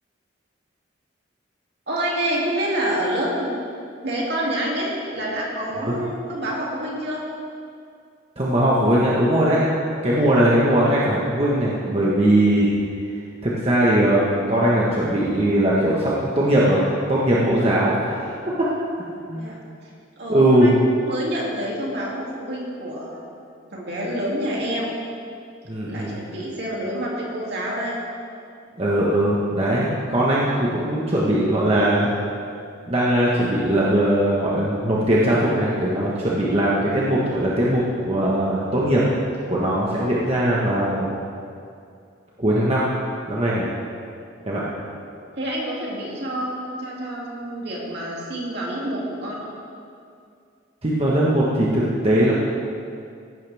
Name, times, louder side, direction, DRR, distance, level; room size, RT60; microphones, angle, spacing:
voice 1, 1.9-3.5 4.0-7.2 19.3-19.6 20.2-20.7 21.0-23.2 23.7-24.9 25.9-28.0 45.4-49.5, right 1 dB, 60° right, -4 dB, 2.8 m, -27 dB
voice 2, 8.4-9.7 10.0-12.7 13.4-18.7 19.3-19.4 20.3-20.7 25.7-26.2 28.8-32.1 32.9-39.1 39.5-41.1 42.4-42.9 43.3-43.7 44.4-44.6 50.8-52.3, right 1 dB, 30° right, -6 dB, 1.4 m, -20 dB
16.0 x 11.5 x 3.6 m, 2.4 s
head